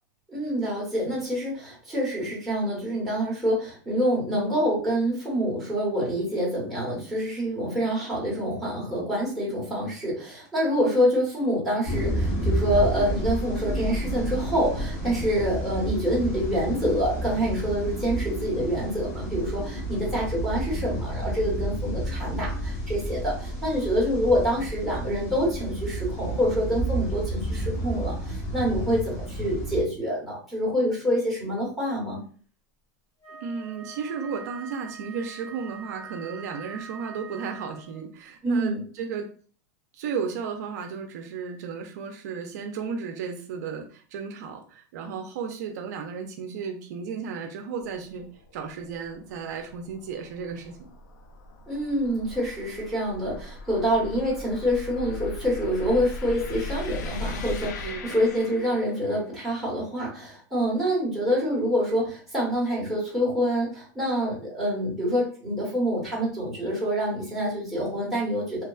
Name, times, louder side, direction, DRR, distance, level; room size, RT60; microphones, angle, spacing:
voice 1, 0.3-32.2 38.4-38.8 51.7-68.6, equal, ahead, -8 dB, 1.2 m, -26 dB
sound 1, 11.8-29.8, right 1 dB, 50° left, 1.0 m, -30 dB
Wind instrument woodwind instrument, 33.2-38.1, right 5 dB, 25° left, 0.8 m, -44 dB
voice 2, 33.3-39.3 39.9-48.3 48.5-50.8 57.8-58.2, right 6 dB, 65° right, 4 dB, 0.4 m, -34 dB
sound 2, 47.8-59.2, left 2 dB, 85° left, 0.4 m, -39 dB
2.9 x 2.3 x 2.3 m, 0.42 s
supercardioid pair, 165°, 10 cm